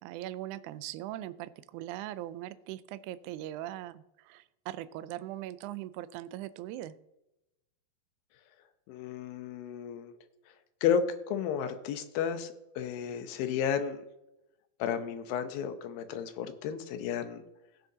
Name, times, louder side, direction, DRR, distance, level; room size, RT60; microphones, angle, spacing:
voice 1, 0.0-6.9, right 14 dB, 85° right, 14 dB, 1.7 m, -40 dB
voice 2, 8.9-10.1 10.8-14.0 14.8-17.4, left 7 dB, 90° left, 9 dB, 2.6 m, -32 dB
17.0 x 6.5 x 2.8 m, 0.92 s
omnidirectional pair, 4.1 m